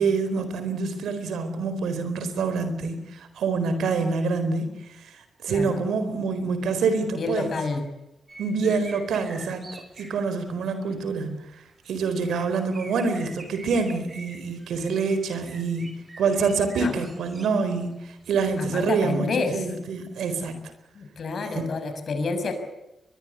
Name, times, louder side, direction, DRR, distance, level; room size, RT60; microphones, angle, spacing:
voice 1, 0.0-7.5 8.4-20.6 21.6-21.7, right 4 dB, 80° right, 10 dB, 4.3 m, -26 dB
voice 2, 5.5-5.8 7.1-7.8 16.8-17.0 18.6-19.6 20.9-22.5, left 4 dB, 60° left, 8 dB, 6.2 m, -29 dB
sound 1, 8.3-10.2 12.2-12.3 12.7-17.5 18.1-18.2 18.6-18.7, right 2 dB, 35° right, 6.3 m, -45 dB
22.5 x 22.0 x 8.3 m, 0.92 s
cardioid pair, 55°, 0 cm